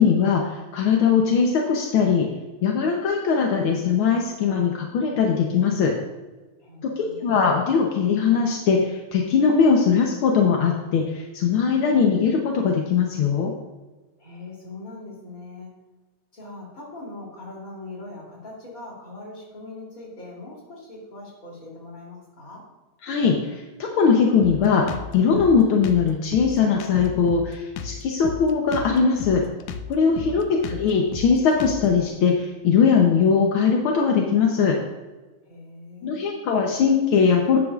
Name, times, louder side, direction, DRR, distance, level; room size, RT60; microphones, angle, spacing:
voice 1, 0.0-2.3 2.6-5.9 6.8-13.5 23.0-24.8 25.1-29.4 29.9-34.8 36.0-37.6, left 6 dB, 65° left, 0 dB, 1.3 m, -20 dB
voice 2, 6.6-7.6 14.2-15.7 16.3-22.6 30.2-30.4 35.4-36.3, left 2 dB, 30° left, -3 dB, 3.2 m, -41 dB
Drum kit, 24.4-32.1, left 7 dB, 85° left, 2.1 m, -34 dB
12.5 x 9.7 x 2.4 m, 1.2 s
omnidirectional pair, 3.3 m